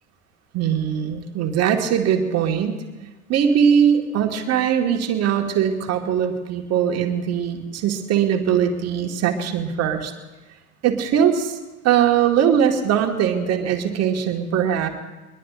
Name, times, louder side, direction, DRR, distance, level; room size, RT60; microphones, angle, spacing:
voice 1, 0.5-2.8 3.3-10.1 10.8-11.6 11.8-14.9, right 8 dB, 35° right, 4 dB, 1.8 m, -21 dB
23.0 x 21.0 x 2.5 m, 1.1 s
figure-of-eight pair, 75°, 43 cm